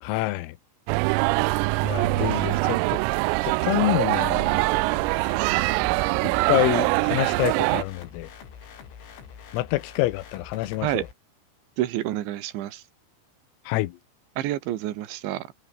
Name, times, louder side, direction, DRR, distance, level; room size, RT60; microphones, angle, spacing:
voice 1, 0.0-0.6 1.8-3.0 3.4-4.6 6.2-8.3 9.5-11.1 13.7-14.0, left 18 dB, 90° left, 3.7 m, -27 dB
sound 1, 0.9-7.8, right 26 dB, 85° right, 3.2 m, -23 dB
sound 2, 4.9-11.1, left 7 dB, 65° left, 6.6 m, -45 dB
voice 2, 11.8-12.8 14.4-15.5, right 13 dB, 70° right, 3.9 m, -28 dB
omnidirectional pair, 6.0 m